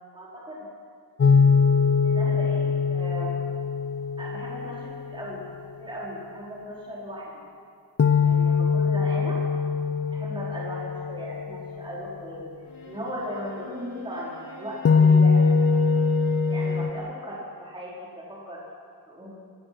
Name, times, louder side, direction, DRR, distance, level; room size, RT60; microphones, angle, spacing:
voice 1, 0.1-0.6 2.0-3.4 4.2-5.4 5.8-7.3 8.2-9.4 10.1-12.5 12.8-15.5 16.4-18.6 19.1-19.3, equal, 15° right, -6 dB, 4.9 m, -37 dB
sound 1, 1.2-5.3 8.0-12.2 14.8-16.9, left 5 dB, 45° left, 1.1 m, -22 dB
Bowed string instrument, 12.6-17.0, left 3 dB, 85° left, 5.6 m, -45 dB
26.0 x 23.0 x 6.2 m, 2.2 s
wide cardioid pair, 175°, 34 cm